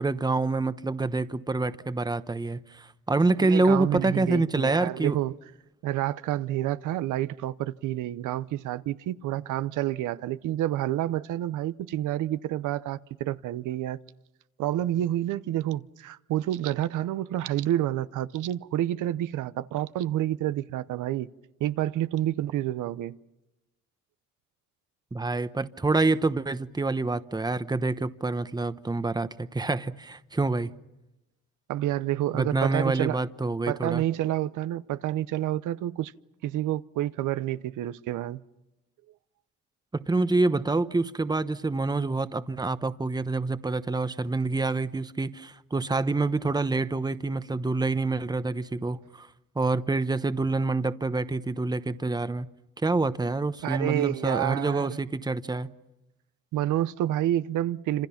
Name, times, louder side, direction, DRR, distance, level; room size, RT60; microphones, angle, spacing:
voice 1, 0.0-5.2 25.1-30.7 32.3-34.0 39.9-49.3 49.5-52.5 52.8-55.7, right 3 dB, 15° right, 1.0 m, -27 dB
voice 2, 3.4-5.4 5.8-14.0 14.6-21.3 21.6-23.2 31.7-33.2 33.7-36.1 36.4-38.4 53.6-55.0 56.5-58.1, right 13 dB, 85° right, 0.8 m, -29 dB
28.0 x 26.5 x 5.8 m
cardioid pair, 90°, 30 cm